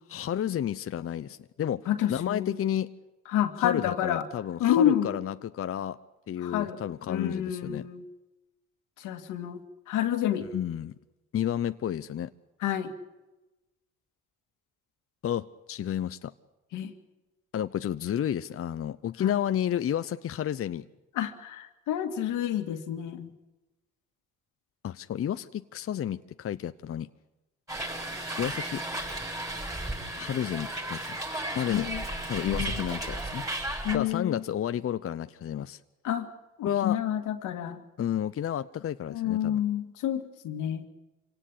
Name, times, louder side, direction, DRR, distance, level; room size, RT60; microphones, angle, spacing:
voice 1, 0.1-2.9 3.6-6.0 6.3-7.9 10.5-10.9 11.3-12.3 15.2-16.3 17.5-20.9 24.8-27.1 28.4-28.8 30.1-31.2 31.5-31.9 32.3-33.4 33.9-35.8 36.6-37.0 38.0-39.6, left 10 dB, 50° left, 12 dB, 0.7 m, -31 dB
voice 2, 1.9-2.6 3.3-4.3 4.6-5.2 6.4-6.8 7.1-8.0 9.0-9.6 9.9-10.5 12.6-12.9 16.7-16.9 19.2-19.3 21.1-23.3 31.7-32.0 32.4-32.8 33.8-34.4 36.0-36.3 36.6-37.8 39.1-40.9, left 10 dB, 90° left, 7 dB, 2.2 m, -29 dB
Hiss, 27.7-34.0, right 1 dB, 10° right, 6.9 m, -34 dB
26.0 x 18.0 x 8.5 m, 1.0 s
cardioid pair, 90°, 30 cm